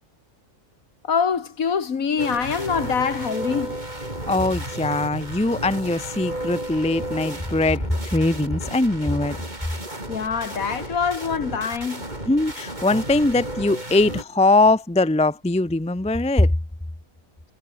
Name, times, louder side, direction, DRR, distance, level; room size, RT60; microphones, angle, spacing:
voice 1, 1.0-3.8 10.1-12.0, left 6 dB, 90° left, 2.2 m, -24 dB
sound 1, 2.2-14.2, right 1 dB, 30° right, 6.4 m, -33 dB
voice 2, 4.3-9.4 12.3-16.5, left 2 dB, 5° left, 0.6 m, -21 dB
omnidirectional pair, 1.4 m